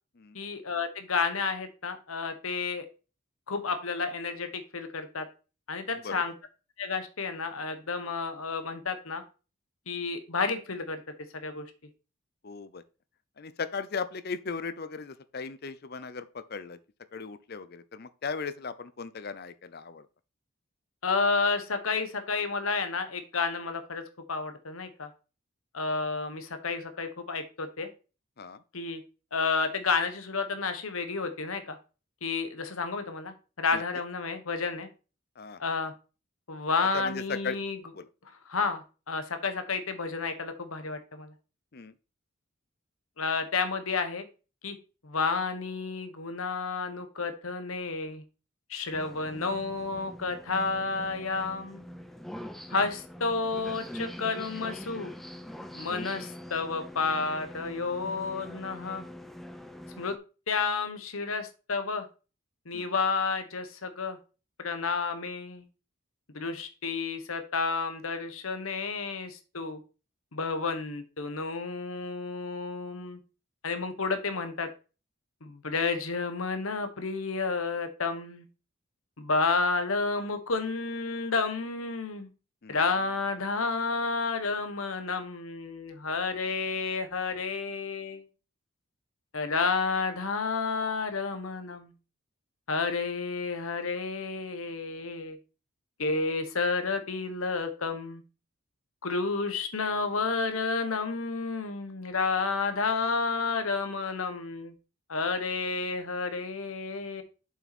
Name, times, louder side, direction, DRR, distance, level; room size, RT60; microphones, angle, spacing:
voice 1, 0.3-2.8 3.5-5.2 5.7-6.3 6.8-9.2 9.9-11.0 11.3-11.7 21.0-24.0 24.3-25.1 25.7-27.9 28.7-29.0 29.3-31.8 32.2-34.9 35.6-35.9 36.5-37.8 38.4-41.3 43.2-44.2 44.6-44.8 45.0-48.2 48.7-51.8 52.7-55.1 55.7-59.0 60.0-60.2 60.5-62.1 62.7-64.2 64.6-65.7 66.3-69.8 70.3-73.2 73.6-74.7 75.4-78.5 79.2-82.3 82.7-88.2 89.3-91.9 92.7-95.4 96.0-98.2 99.0-104.7 105.1-107.2, left 4 dB, 80° left, 1.2 m, -31 dB
voice 2, 12.4-12.8 13.4-16.8 17.1-20.1 28.4-28.6 33.7-33.8 35.4-35.6 36.9-37.6 37.9-38.1 41.7-41.9 62.7-62.9 82.6-82.8, left 5 dB, 50° left, 0.6 m, -37 dB
sound 1, 48.9-60.2, equal, ahead, 0.6 m, -43 dB
7.2 x 5.9 x 4.2 m
head